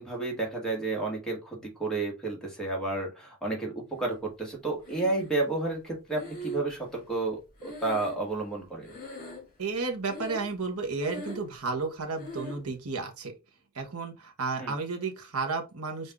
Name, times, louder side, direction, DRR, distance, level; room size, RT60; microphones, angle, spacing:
voice 1, 0.0-8.9 14.6-14.7, right 2 dB, 5° left, 1.6 m, -31 dB
Breathing, 4.8-5.5 6.1-8.6 8.8-9.7 10.0-10.6 10.9-11.6 12.2-12.7, equal, 45° left, 2.4 m, -41 dB
voice 2, 9.6-13.3 13.7-16.1, right 4 dB, 90° right, 1.1 m, -32 dB
5.3 x 2.6 x 3.5 m
head